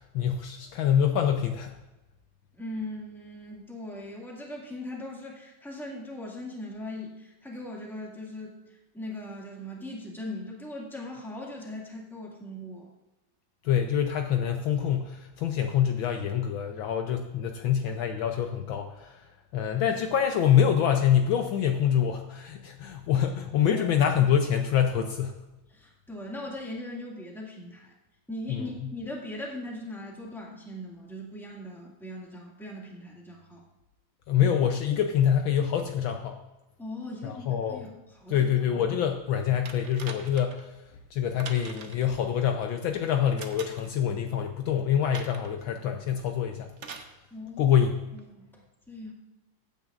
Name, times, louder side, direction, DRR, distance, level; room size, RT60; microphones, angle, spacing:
voice 1, 0.0-1.7 13.6-19.2 19.5-25.3 28.5-28.6 34.3-36.4 37.2-37.8 38.3-40.7 41.1-46.7 47.6-47.9, left 9 dB, 70° left, 5 dB, 1.4 m, -25 dB
voice 2, 2.5-12.9 23.7-23.8 25.7-27.9 28.3-33.6 36.8-38.5 47.3-47.8 48.1-49.1, left 1 dB, ahead, -2 dB, 1.7 m, -40 dB
sound 1, 39.7-40.6 41.4-42.1 43.4-44.0 45.1-45.5 46.8-47.1 48.2-48.3, right 5 dB, 70° right, 0.6 m, -43 dB
15.5 x 9.3 x 2.5 m, 1.0 s
omnidirectional pair, 2.4 m